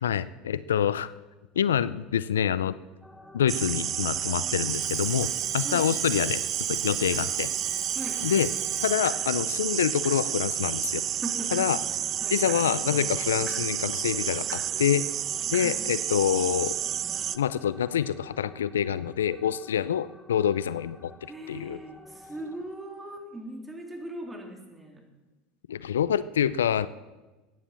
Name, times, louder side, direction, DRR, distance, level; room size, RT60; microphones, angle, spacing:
voice 1, 0.0-1.1 1.6-2.8 3.3-6.4 6.7-7.5 8.2-8.5 8.8-11.0 11.5-11.8 12.3-15.1 15.5-16.7 17.3-21.1 21.5-21.8 25.7-26.9, left 9 dB, 90° left, 17 dB, 0.5 m, -26 dB
sound 1, 3.0-22.6, left 1 dB, 5° left, 1.5 m, -51 dB
sound 2, 3.5-17.4, right 10 dB, 45° right, 0.6 m, -30 dB
Alarm, 4.6-9.3, right 9 dB, 65° right, 2.3 m, -39 dB
voice 2, 11.2-11.7 12.2-12.4 15.6-15.9 21.3-25.0, right 2 dB, 15° right, 2 dB, 3.5 m, -39 dB
14.0 x 9.9 x 7.1 m, 1.2 s
hypercardioid pair, 85°, 0 cm